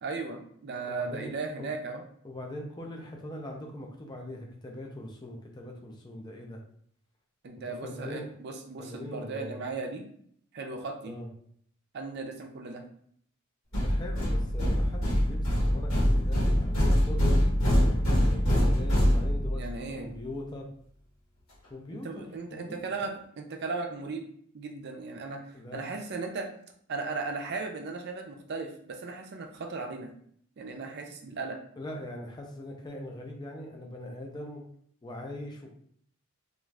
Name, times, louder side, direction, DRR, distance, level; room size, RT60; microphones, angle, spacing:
voice 1, 0.0-2.0 7.4-10.0 10.5-11.2 11.9-12.8 19.5-20.1 21.9-24.2 24.5-26.5 26.9-30.1 30.6-31.6, right 3 dB, 50° right, 4 dB, 0.4 m, -36 dB
voice 2, 0.9-1.7 2.2-6.6 7.7-8.3 8.8-9.6 11.0-11.3 13.8-17.5 18.2-19.6 19.9-20.7 21.7-22.8 25.5-25.8 31.8-34.6 35.0-35.7, left 1 dB, 20° left, 0 dB, 0.4 m, -41 dB
sound 1, 13.7-19.7, equal, 85° left, 1.2 m, -24 dB
2.4 x 2.3 x 3.1 m, 0.63 s
head